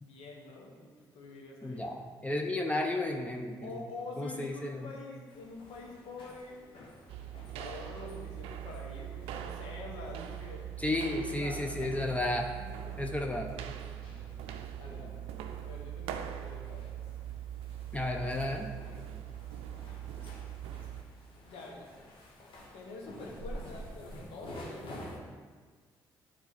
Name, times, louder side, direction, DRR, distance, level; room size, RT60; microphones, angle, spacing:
voice 1, 0.0-1.9 3.6-6.6 7.5-10.7 11.0-12.0 12.4-12.8 14.8-15.2 15.6-17.0 21.4-22.0 22.7-25.1, left 3 dB, 75° left, -1 dB, 1.5 m, -46 dB
voice 2, 1.6-3.7 4.2-4.9 10.8-12.5 13.0-13.5 17.9-18.7, left 1 dB, 15° left, 2 dB, 0.8 m, -33 dB
sound 1, 5.3-25.2, equal, 60° left, 1.7 m, -51 dB
sound 2, 7.1-21.0, right 10 dB, 75° right, 0.5 m, -42 dB
9.5 x 3.8 x 4.2 m, 1.5 s
hypercardioid pair, 50°, 10 cm